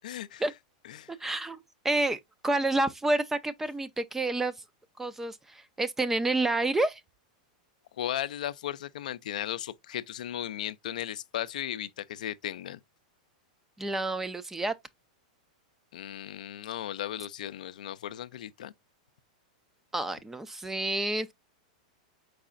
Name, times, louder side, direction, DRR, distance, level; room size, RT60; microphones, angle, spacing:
voice 1, 0.0-0.4 0.8-1.1 8.0-12.8 15.9-18.7, left 11 dB, 80° left, 0.4 m, -36 dB
voice 2, 1.1-4.5 5.0-7.0 13.8-14.7 19.9-21.3, right 2 dB, 10° right, 0.4 m, -29 dB
4.7 x 4.1 x 2.4 m
supercardioid pair, 140°, 4 cm